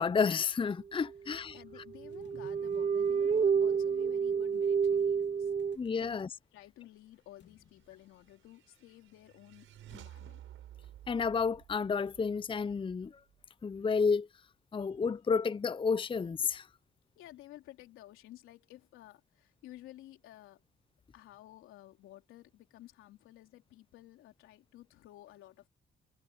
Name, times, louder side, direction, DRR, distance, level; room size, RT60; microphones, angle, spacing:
voice 1, 0.0-1.6 5.8-6.3 11.1-13.2 13.6-14.3 14.7-16.7, left 5 dB, 25° left, 0.6 m, -31 dB
sound 1, 1.1-1.2 1.8-5.8, right 6 dB, 35° right, 0.7 m, -29 dB
voice 2, 1.5-5.5 5.9-6.2 6.5-10.4 17.1-20.6 21.1-25.7, left 14 dB, 90° left, 3.5 m, -54 dB
sound 2, 2.0-8.9, left 9 dB, 65° left, 3.4 m, -64 dB
sound 3, 7.8-13.4, right 12 dB, 80° right, 5.7 m, -54 dB
supercardioid pair, 65°, 20 cm